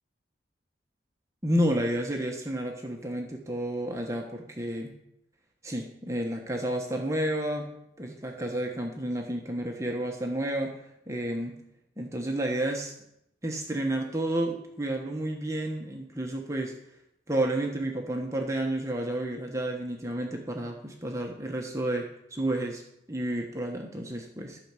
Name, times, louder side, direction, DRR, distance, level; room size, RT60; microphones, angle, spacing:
voice 1, 1.4-4.9 5.6-7.7 8.0-10.7 11.1-11.6 12.0-12.9 13.4-16.7 17.3-22.8 23.1-24.6, right 1 dB, 15° right, 1 dB, 1.2 m, -31 dB
13.0 x 6.0 x 8.3 m, 0.79 s
head